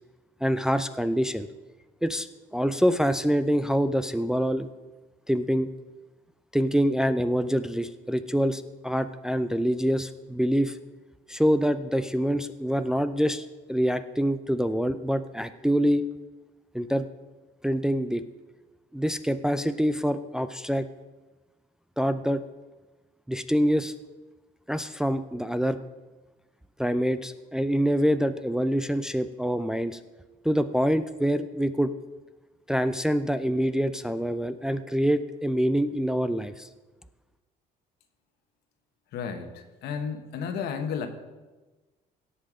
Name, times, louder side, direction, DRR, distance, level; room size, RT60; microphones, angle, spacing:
voice 1, 0.4-1.5 2.0-2.3 2.5-4.7 5.3-5.7 6.5-10.8 11.3-16.1 16.7-17.1 17.6-18.2 18.9-20.9 22.0-22.4 23.3-23.9 24.7-25.8 26.8-30.0 30.4-31.9 32.7-36.7, equal, 5° right, 10 dB, 0.4 m, -25 dB
voice 2, 39.1-41.1, left 6 dB, 75° left, 7 dB, 1.3 m, -32 dB
17.0 x 5.8 x 4.9 m, 1.2 s
cardioid pair, 110°, 17 cm